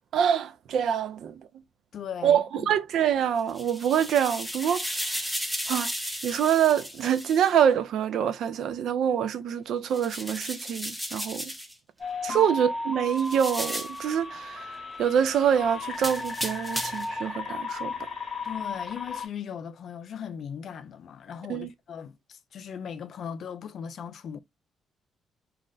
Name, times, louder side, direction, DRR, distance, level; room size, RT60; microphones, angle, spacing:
voice 1, 0.1-1.5 2.2-5.0 5.7-5.9 6.2-11.5 12.2-18.1 21.5-21.7, right 9 dB, 70° right, 0.4 m, -25 dB
voice 2, 1.9-2.7 12.3-12.5 18.4-24.4, left 8 dB, 65° left, 0.4 m, -38 dB
sound 1, 3.4-7.5 9.9-11.7 13.2-14.0 16.0-17.1, equal, ahead, 0.6 m, -34 dB
sound 2, 12.0-19.3, left 3 dB, 35° left, 0.9 m, -35 dB
2.4 x 2.0 x 3.8 m
cardioid pair, 90°, 0 cm